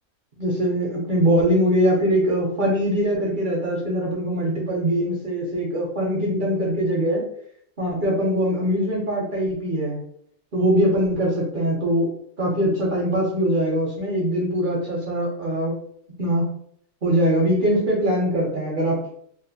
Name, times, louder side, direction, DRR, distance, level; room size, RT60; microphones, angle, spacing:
voice 1, 0.4-7.2 7.8-10.0 10.5-15.7 16.2-16.5 17.0-19.1, equal, 55° right, -3 dB, 0.6 m, -22 dB
2.4 x 2.4 x 2.6 m, 0.65 s
omnidirectional pair, 1.4 m